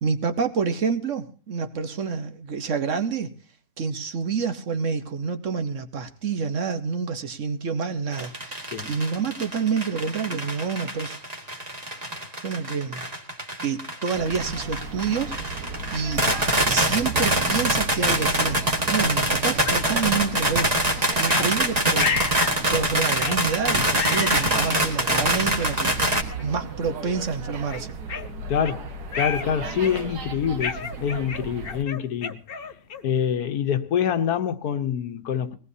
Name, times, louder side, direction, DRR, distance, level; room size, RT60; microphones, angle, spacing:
voice 1, 0.0-3.3 3.8-11.2 12.4-13.0 13.6-16.2 16.7-20.7 21.2-25.9 26.4-27.9, right 5 dB, 55° right, 1.3 m, -28 dB
sound 1, 8.1-26.2, right 1 dB, 25° right, 1.7 m, -24 dB
sound 2, 14.1-31.8, right 4 dB, 90° right, 1.9 m, -36 dB
sound 3, 19.7-19.8 20.6-20.7 21.3-21.5 22.0-22.6 23.2-23.4 23.9-24.8 25.6-25.7 26.4-26.6 27.0-27.2 27.7-28.8 29.1-29.5 29.8-30.2 30.6-33.2, left 5 dB, 45° left, 0.9 m, -31 dB
voice 2, 28.5-28.9 29.1-32.4 33.0-35.6, left 8 dB, 75° left, 1.4 m, -25 dB
22.0 x 18.0 x 2.7 m
omnidirectional pair, 1.7 m